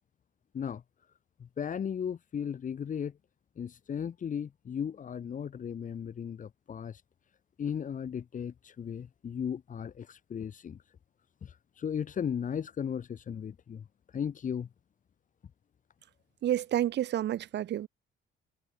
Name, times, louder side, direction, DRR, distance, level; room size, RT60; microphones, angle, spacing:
voice 1, 1.4-3.1 3.6-7.0 7.6-10.8 11.4-14.7, left 8 dB, 40° left, 7.4 m, -36 dB
voice 2, 16.4-17.9, right 12 dB, 60° right, 4.0 m, -29 dB
cardioid pair, 135°, 20 cm